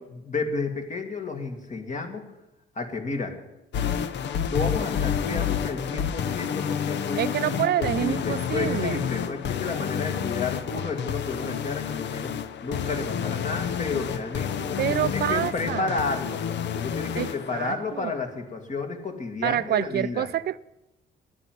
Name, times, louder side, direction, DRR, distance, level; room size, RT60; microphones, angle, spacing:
voice 1, 0.0-2.2 2.8-3.3 4.5-16.4 16.7-20.3, left 3 dB, 40° left, 2.1 m, -32 dB
sound 1, 3.7-17.8, left 8 dB, 65° left, 0.7 m, -29 dB
voice 2, 7.2-9.0 14.8-15.9 17.2-18.1 19.4-20.6, right 11 dB, 55° right, 0.5 m, -27 dB
9.8 x 9.5 x 9.2 m
cardioid pair, 90°, 20 cm